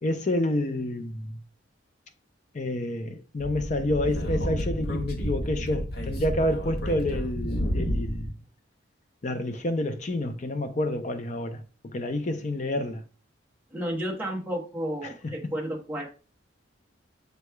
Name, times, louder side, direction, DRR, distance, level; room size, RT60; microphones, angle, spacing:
voice 1, 0.0-1.4 2.5-8.3 9.2-11.6 11.9-13.0 15.0-15.1, left 1 dB, 40° left, 0.5 m, -29 dB
Speech / Wind, 3.4-8.3, equal, 55° left, 0.9 m, -30 dB
voice 2, 13.7-16.1, equal, 10° right, 1.0 m, -32 dB
6.6 x 3.0 x 2.2 m
head